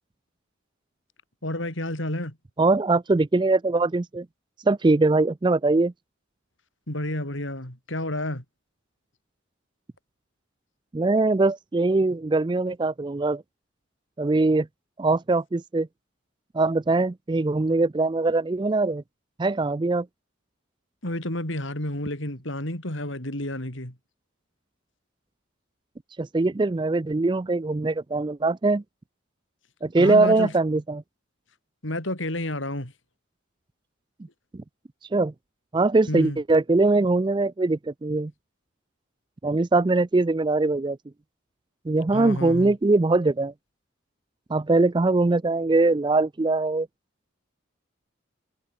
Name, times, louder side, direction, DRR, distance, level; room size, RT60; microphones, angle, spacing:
voice 1, 1.4-2.4 6.9-8.4 21.0-23.9 30.0-30.5 31.8-32.9 36.1-36.4 42.1-42.7, left 1 dB, 70° left, 5.0 m, -30 dB
voice 2, 2.6-4.3 4.7-5.9 10.9-13.4 14.2-14.7 15.0-15.9 16.5-19.0 19.4-20.1 26.2-28.8 29.8-31.0 34.5-34.6 35.1-35.3 35.7-38.3 39.4-41.0 41.9-43.5 44.5-46.9, right 3 dB, 20° right, 0.4 m, -22 dB
head